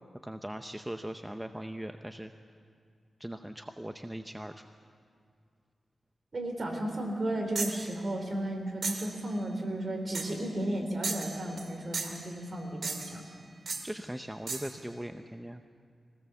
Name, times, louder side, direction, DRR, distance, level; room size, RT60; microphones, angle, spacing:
voice 1, 0.2-2.3 3.2-4.6 13.8-15.6, right 1 dB, 5° right, 7 dB, 0.7 m, -40 dB
voice 2, 6.3-13.2, right 1 dB, 45° right, 2 dB, 3.8 m, -34 dB
sound 1, 7.5-7.9 8.8-9.1 10.1-10.4 11.0-11.7 11.9-12.3 12.8-13.2 13.7-13.9 14.5-14.7, right 4 dB, 70° right, 2.2 m, -35 dB
22.5 x 18.0 x 7.2 m, 2.2 s
wide cardioid pair, 100°, 0 cm